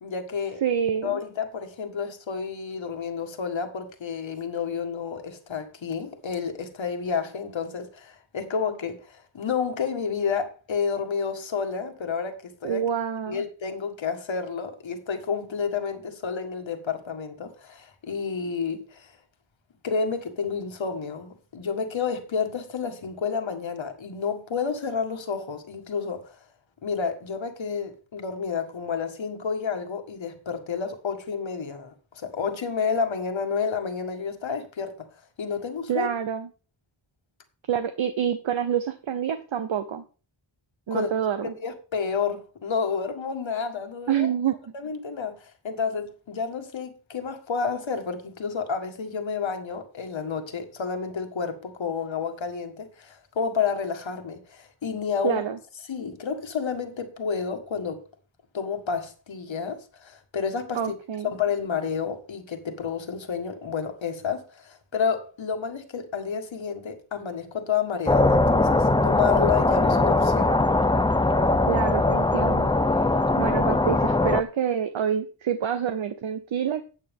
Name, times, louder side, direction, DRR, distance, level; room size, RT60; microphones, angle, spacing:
voice 1, 0.0-0.6 1.0-12.8 13.3-19.1 19.8-26.4 26.8-35.1 35.4-36.1 40.9-41.1 41.6-44.3 44.7-55.4 55.9-58.0 58.5-60.8 61.3-70.6, left 6 dB, 70° left, 1.7 m, -30 dB
voice 2, 0.6-1.2 12.6-13.4 35.9-36.5 37.7-40.0 40.9-41.5 44.1-44.5 55.2-55.6 60.7-61.3 71.7-72.7 73.4-76.8, right 8 dB, 70° right, 0.9 m, -27 dB
sound 1, 68.1-74.4, left 2 dB, 10° left, 0.5 m, -21 dB
12.5 x 8.2 x 3.6 m
wide cardioid pair, 95°, 48 cm